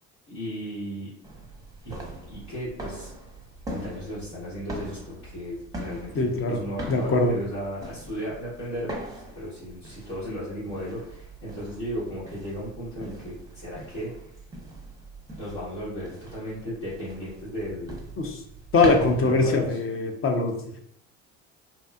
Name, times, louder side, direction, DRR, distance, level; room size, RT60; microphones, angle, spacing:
voice 1, 0.3-1.1 1.8-1.9 2.2-3.1 3.7-14.1 15.4-18.0 18.8-19.8, equal, 75° left, -12 dB, 1.4 m, -35 dB
sound 1, 1.2-19.7, right 1 dB, 10° right, 0.7 m, -41 dB
voice 2, 6.2-6.6 6.9-7.4 18.2-18.4 18.7-20.8, left 3 dB, 40° left, 3 dB, 0.6 m, -22 dB
2.7 x 2.3 x 2.2 m, 0.69 s
supercardioid pair, 70°, 35 cm